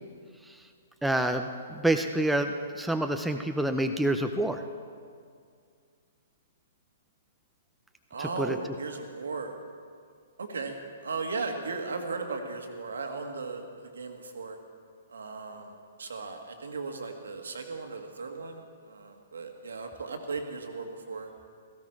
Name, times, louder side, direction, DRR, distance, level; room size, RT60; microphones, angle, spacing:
voice 1, 1.0-4.6 8.2-8.6, right 1 dB, ahead, 5 dB, 0.6 m, -27 dB
voice 2, 8.1-9.5 10.4-14.6 15.1-15.7 16.0-21.3, right 4 dB, 65° right, 5 dB, 1.8 m, -36 dB
17.0 x 15.0 x 4.8 m, 2.2 s
figure-of-eight pair, 115°, 0 cm